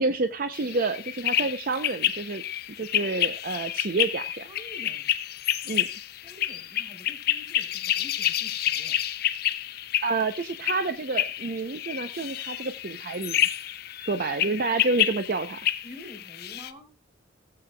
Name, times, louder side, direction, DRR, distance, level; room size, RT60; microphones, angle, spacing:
voice 1, 0.0-2.4 2.8-4.5 5.7-5.9 10.0-13.4 14.0-15.6, right 3 dB, 55° right, 9 dB, 0.6 m, -29 dB
sound 1, 0.5-16.7, left 12 dB, 60° left, 0.6 m, -29 dB
voice 2, 4.3-5.1 6.1-9.0 15.8-16.9, left 1 dB, 20° right, 2 dB, 3.2 m, -48 dB
17.0 x 7.7 x 2.2 m, 0.26 s
head